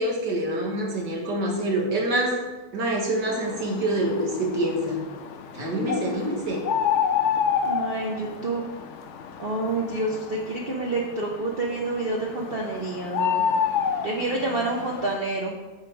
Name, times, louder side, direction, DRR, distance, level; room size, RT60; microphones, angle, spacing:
voice 1, 0.0-2.3 2.7-5.0 5.5-6.6, right 1 dB, 70° right, -2 dB, 2.2 m, -26 dB
sound 1, 3.4-15.2, left 7 dB, 80° left, 0.6 m, -29 dB
voice 2, 5.7-6.4 7.6-8.6 9.4-13.4 14.0-15.5, right 2 dB, 45° right, -2 dB, 0.8 m, -28 dB
7.8 x 5.1 x 4.8 m, 1.2 s
omnidirectional pair, 1.9 m